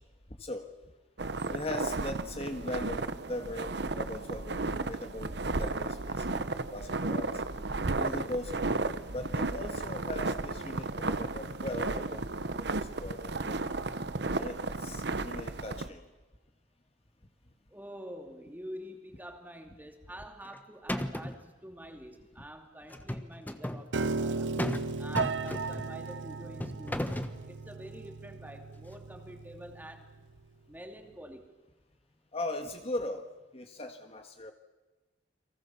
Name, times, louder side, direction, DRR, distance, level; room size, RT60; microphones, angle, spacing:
voice 1, 0.4-0.7 1.5-7.4 7.9-12.3 12.6-13.6 14.4-16.1 32.3-33.3 33.5-34.5, left 1 dB, 35° left, 5 dB, 1.6 m, -39 dB
sound 1, 1.2-15.9, right 3 dB, 65° right, 1.0 m, -34 dB
voice 2, 17.7-24.5 25.0-27.1 27.5-30.1 30.7-31.4, equal, 10° right, 4 dB, 2.7 m, -47 dB
sound 2, 20.2-20.6 20.9-21.4 22.9-23.8 24.6-24.9 25.2-25.9 26.6-27.4, left 1 dB, 10° left, 1.3 m, -34 dB
Piano, 23.9-30.1, right 4 dB, 85° right, 0.8 m, -36 dB
29.5 x 23.0 x 7.1 m, 1.2 s
head